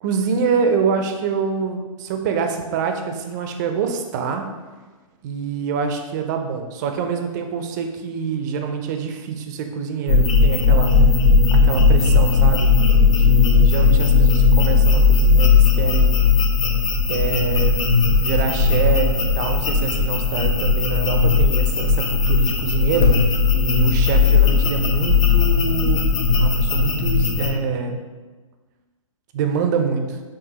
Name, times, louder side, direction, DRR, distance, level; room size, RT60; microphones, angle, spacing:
voice 1, 0.0-4.5 5.2-10.9 11.5-12.8 13.1-16.4 17.1-17.8 18.1-23.3 23.5-26.1 26.4-28.0 29.3-30.2, right 5 dB, 30° right, 5 dB, 0.4 m, -25 dB
sound 1, 10.1-27.5, left 4 dB, 70° left, 0.8 m, -17 dB
6.0 x 2.5 x 2.8 m, 1.3 s
hypercardioid pair, 145°, 17 cm